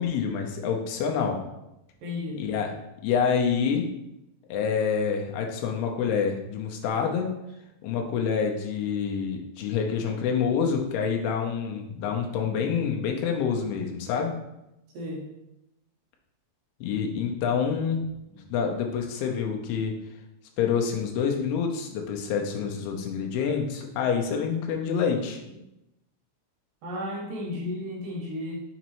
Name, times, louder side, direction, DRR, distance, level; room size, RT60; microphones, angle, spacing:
voice 1, 0.0-1.4 2.4-2.7 3.0-3.9 4.5-7.3 7.8-14.3 16.8-18.1 18.5-20.0 20.6-25.4, left 6 dB, 80° left, 2 dB, 2.7 m, -27 dB
voice 2, 2.0-2.4 14.9-15.3 18.3-18.4 26.8-28.6, left 1 dB, 70° right, -2 dB, 2.4 m, -33 dB
6.5 x 5.1 x 3.0 m, 0.89 s
omnidirectional pair, 4.6 m